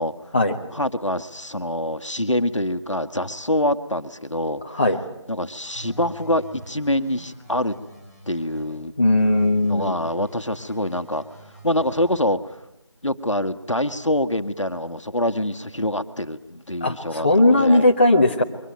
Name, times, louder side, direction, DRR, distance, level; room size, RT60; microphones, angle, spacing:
voice 1, 0.7-4.8 5.3-7.8 8.3-8.9 9.7-11.2 11.6-12.4 13.0-17.9, left 1 dB, 80° left, 10 dB, 1.6 m, -25 dB
voice 2, 4.6-5.0 9.0-10.0 16.8-18.4, left 2 dB, 20° left, 0 dB, 1.2 m, -18 dB
sound 1, 5.7-8.8 9.2-12.2, right 1 dB, 10° right, 7.5 m, -45 dB
23.0 x 19.5 x 9.1 m, 0.91 s
figure-of-eight pair, 170°, 16 cm